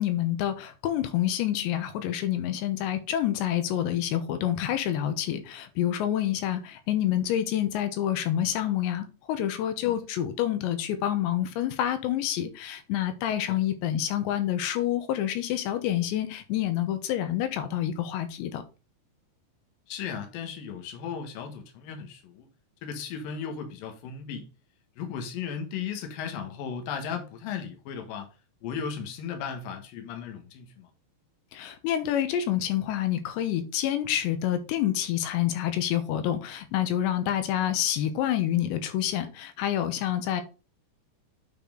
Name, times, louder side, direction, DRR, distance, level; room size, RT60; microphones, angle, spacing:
voice 1, 0.0-18.6 31.5-40.4, left 11 dB, 80° left, 3.2 m, -28 dB
voice 2, 19.9-22.5 22.8-24.5 25.0-28.3 28.6-30.9, left 7 dB, 65° left, 2.6 m, -36 dB
8.9 x 4.2 x 3.8 m
omnidirectional pair, 5.1 m